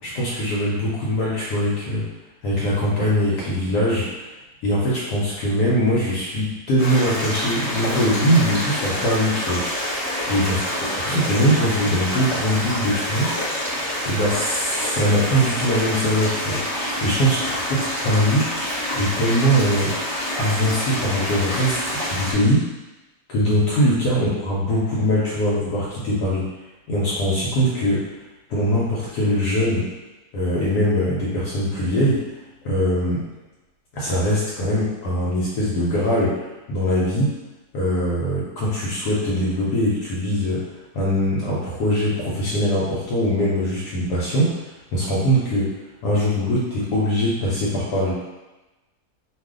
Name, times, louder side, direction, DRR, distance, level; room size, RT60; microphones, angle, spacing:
voice 1, 0.0-2.1 2.4-4.1 4.6-9.6 10.3-13.4 14.1-16.6 17.0-18.5 18.9-19.9 20.4-22.7 23.3-26.4 26.9-28.1 28.5-29.9 30.3-32.2 32.6-33.2 33.9-37.3 37.7-40.6 40.9-44.6 44.9-45.8 46.0-48.1, equal, 80° left, -6 dB, 1.2 m, -22 dB
sound 1, 6.8-22.3, left 1 dB, 15° left, 0.5 m, -27 dB
2.6 x 2.4 x 3.6 m, 1.1 s
omnidirectional pair, 1.8 m